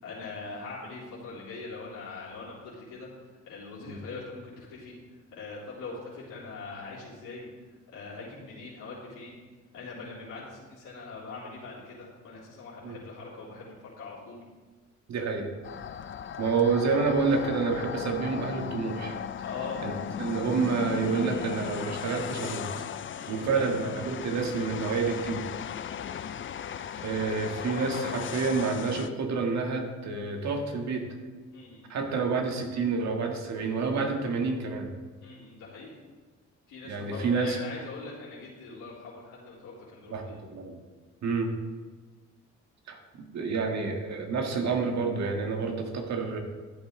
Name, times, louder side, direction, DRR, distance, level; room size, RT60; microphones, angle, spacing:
voice 1, 0.0-3.1 3.5-4.9 5.3-9.4 9.7-14.4 19.4-19.8 23.2-23.6 31.5-31.9 35.2-35.9 36.7-40.4, left 4 dB, 85° left, -9 dB, 3.7 m, -42 dB
voice 2, 15.1-15.5 16.4-19.2 19.8-19.9 20.2-22.8 23.3-25.5 27.0-31.1 31.9-34.9 36.9-37.6 40.1-40.8 41.2-41.5 42.9-43.0 43.3-46.4, right 4 dB, 65° right, 3 dB, 1.8 m, -28 dB
sound 1, 15.6-29.1, left 8 dB, 40° left, 0.5 m, -37 dB
13.5 x 8.0 x 3.8 m, 1.4 s
cardioid pair, 90°, 30 cm